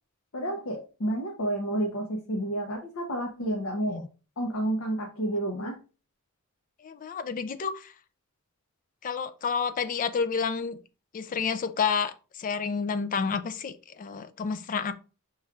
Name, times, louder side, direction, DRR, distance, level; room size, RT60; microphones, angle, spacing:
voice 1, 0.3-4.0 4.4-5.8, right 1 dB, 65° left, 0.8 m, -30 dB
voice 2, 6.8-7.9 9.0-10.8 11.1-14.9, left 5 dB, 35° left, 0.3 m, -30 dB
5.8 x 3.1 x 2.3 m
head